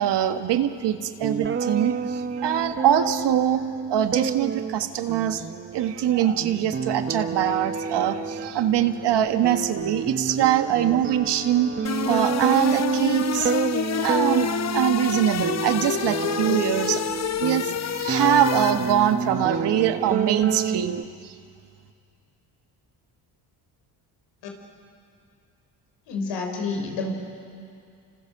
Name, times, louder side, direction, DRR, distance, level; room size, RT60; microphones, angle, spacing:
voice 1, 0.0-3.6 3.9-5.4 5.7-17.0 17.4-21.3, right 10 dB, 70° right, 7 dB, 1.8 m, -23 dB
sound 1, 1.2-21.0, right 5 dB, 25° right, 0.9 m, -29 dB
sound 2, 11.8-19.3, left 8 dB, 35° left, 0.9 m, -28 dB
voice 2, 26.1-27.1, left 4 dB, 75° left, 2 dB, 5.7 m, -29 dB
30.0 x 27.0 x 6.9 m, 2.4 s
supercardioid pair, 70°, 43 cm